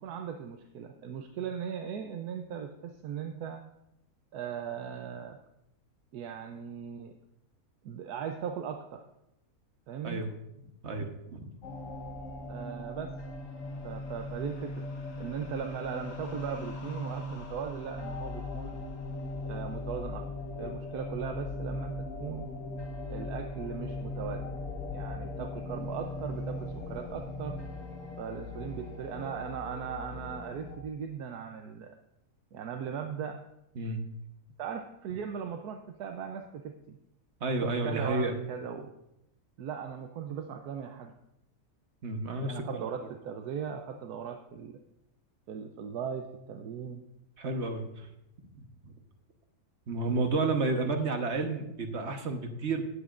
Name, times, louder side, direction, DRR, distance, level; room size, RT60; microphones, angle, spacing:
voice 1, 0.0-3.6 4.3-5.4 6.1-7.1 7.8-9.1 9.9-10.3 12.5-13.1 13.8-14.9 15.2-18.8 19.4-20.2 20.6-22.5 23.1-24.6 24.9-27.6 28.2-32.0 32.5-33.4 34.6-37.0 37.6-38.9 39.6-41.1 42.4-44.8 45.5-47.0, right 7 dB, 80° right, 5 dB, 1.2 m, -38 dB
voice 2, 10.8-11.5 33.8-34.0 37.4-38.4 42.0-42.9 47.4-48.1 48.6-48.9 49.9-52.8, right 3 dB, 50° right, 5 dB, 1.3 m, -31 dB
sound 1, 11.6-30.8, left 2 dB, 60° left, 1.5 m, -39 dB
18.5 x 8.2 x 2.5 m, 0.84 s
omnidirectional pair, 1.6 m